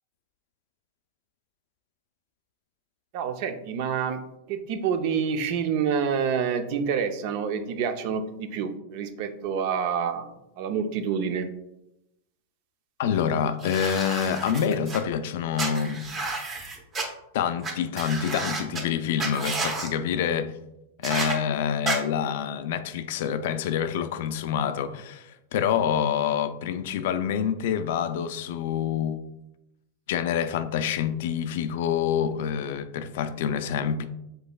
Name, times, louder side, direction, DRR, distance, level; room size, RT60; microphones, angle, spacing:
voice 1, 3.1-4.2 4.5-10.3 10.6-11.5, right 7 dB, 50° right, 0.5 m, -27 dB
voice 2, 13.0-16.1 17.3-20.5 21.0-29.3 30.1-34.1, left 8 dB, 65° left, 0.4 m, -27 dB
sound 1, 13.6-15.0 15.6-17.0 17.6-17.7 18.0-18.8 19.2-19.9 21.0-21.4 21.9-22.0, right 3 dB, 25° right, 0.9 m, -31 dB
5.2 x 3.9 x 2.3 m
supercardioid pair, 135°, 0 cm